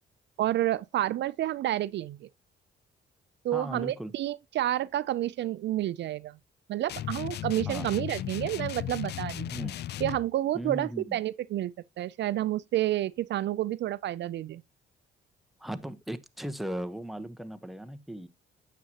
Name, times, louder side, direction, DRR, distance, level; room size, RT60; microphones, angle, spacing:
voice 1, 0.4-2.3 3.4-6.4 6.7-9.5 10.0-14.6, right 13 dB, 65° right, 0.4 m, -30 dB
voice 2, 3.5-4.1 7.7-7.9 9.5-9.8 10.5-11.2 15.6-18.3, right 1 dB, ahead, 0.9 m, -37 dB
sound 1, 6.9-10.3, left 12 dB, 55° left, 0.4 m, -35 dB
9.3 x 7.5 x 2.9 m
cardioid pair, 90°, 20 cm